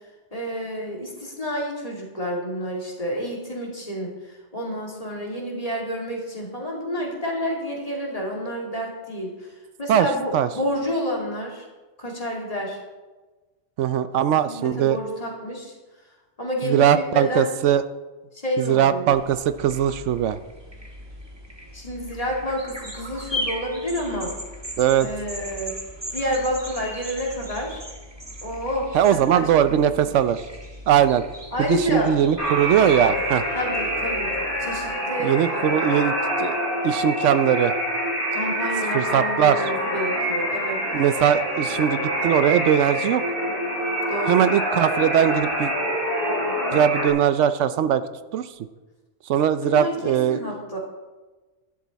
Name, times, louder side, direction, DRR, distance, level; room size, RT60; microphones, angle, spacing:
voice 1, 0.3-9.3 9.8-11.7 12.0-12.8 14.4-15.7 16.4-17.5 18.4-19.1 21.7-24.3 25.0-25.8 26.1-27.8 28.4-29.5 31.5-32.1 33.5-34.3 34.6-35.3 38.3-40.8 44.1-44.5 49.6-49.9 50.3-50.8, equal, 30° left, -2 dB, 2.6 m, -29 dB
voice 2, 13.8-15.0 16.6-17.8 18.6-20.4 24.8-25.1 28.9-30.4 30.9-31.2 31.6-33.4 35.2-36.6 36.8-37.7 38.9-39.6 40.9-43.2 44.3-45.7 46.7-48.0 48.3-48.5 49.3-50.4, right 9 dB, 80° right, 13 dB, 0.9 m, -20 dB
sound 1, 19.1-34.9, equal, 20° right, 1.5 m, -38 dB
sound 2, 32.4-47.1, equal, 50° right, 4.0 m, -26 dB
12.0 x 11.5 x 4.1 m, 1.2 s
omnidirectional pair, 1.2 m